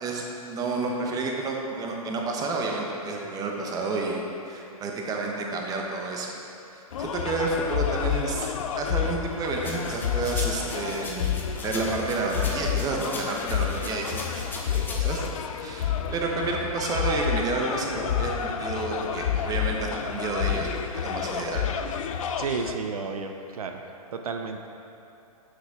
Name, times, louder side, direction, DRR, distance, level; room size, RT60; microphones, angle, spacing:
voice 1, 0.0-4.2 4.4-6.4 6.7-11.3 11.6-15.3 15.5-21.7, right 3 dB, 20° right, 0 dB, 1.0 m, -30 dB
sound 1, 6.9-22.7, left 8 dB, 60° left, 0.5 m, -30 dB
sound 2, 9.6-15.3, left 2 dB, 10° left, 0.9 m, -39 dB
voice 2, 22.4-23.8 24.1-24.6, right 5 dB, 70° right, 5 dB, 0.6 m, -32 dB
9.3 x 6.5 x 3.6 m, 2.9 s
hypercardioid pair, 120°, 19 cm